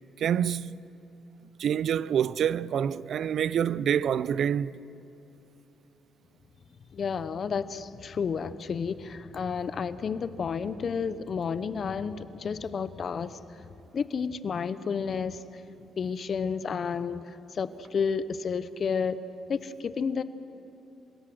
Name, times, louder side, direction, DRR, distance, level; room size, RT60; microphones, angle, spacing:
voice 1, 0.2-0.8 1.6-4.8, right 8 dB, 65° right, 0.4 m, -27 dB
voice 2, 6.9-13.6 13.9-15.4 16.0-19.2 19.5-20.2, left 6 dB, 50° left, 0.8 m, -31 dB
27.5 x 17.0 x 6.4 m
cardioid pair, 90°, 0 cm